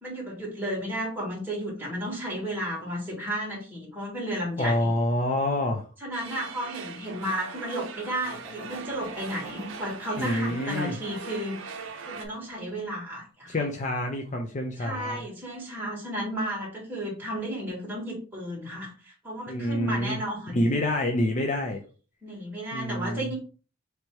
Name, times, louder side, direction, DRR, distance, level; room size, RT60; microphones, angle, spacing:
voice 1, 0.0-4.9 6.0-13.6 14.8-20.6 22.2-23.4, right 1 dB, 10° right, -4 dB, 1.6 m, -33 dB
voice 2, 4.6-5.8 10.2-10.9 13.5-15.2 19.5-20.2 20.5-21.8 22.7-23.3, left 1 dB, 35° left, 2 dB, 0.5 m, -27 dB
sound 1, 6.1-12.3, right 5 dB, 65° right, 0.6 m, -41 dB
Laughter, 8.2-11.3 11.8-12.9, right 1 dB, 10° left, 1.5 m, -49 dB
3.3 x 3.0 x 4.5 m, 0.37 s
head